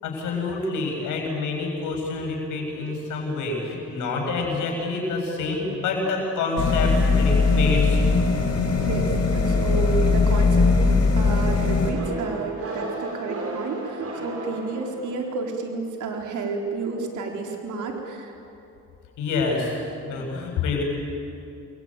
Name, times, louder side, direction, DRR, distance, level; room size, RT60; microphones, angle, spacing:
voice 1, 0.0-8.0 19.2-19.8 20.1-20.8, left 3 dB, 85° left, 1 dB, 7.7 m, -27 dB
sound 1, 6.6-11.9, left 4 dB, 60° left, 4.6 m, -20 dB
voice 2, 8.8-10.7 11.2-18.4, right 4 dB, 80° right, 1 dB, 4.2 m, -31 dB
sound 2, 11.9-15.4, right 2 dB, 50° right, 7.0 m, -33 dB
28.5 x 23.0 x 9.2 m, 2.7 s
cardioid pair, 90°, 30 cm